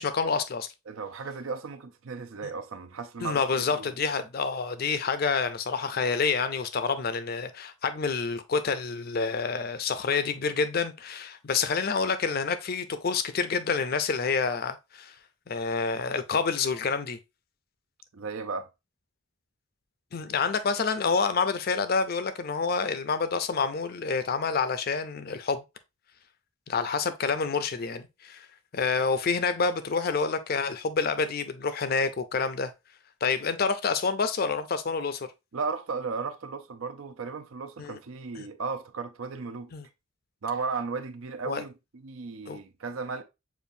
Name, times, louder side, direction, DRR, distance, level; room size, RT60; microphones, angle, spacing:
voice 1, 0.0-0.7 3.2-15.1 15.5-17.2 20.1-25.6 26.7-28.5 28.7-32.7 33.2-35.3 37.8-38.0 38.4-38.5 39.7-39.9 41.4-41.6 42.5-42.6, left 5 dB, 45° left, 0.5 m, -28 dB
voice 2, 0.9-3.9 18.1-18.7 35.5-39.7 40.4-43.2, right 4 dB, 75° right, 0.6 m, -35 dB
6.9 x 2.6 x 2.6 m
head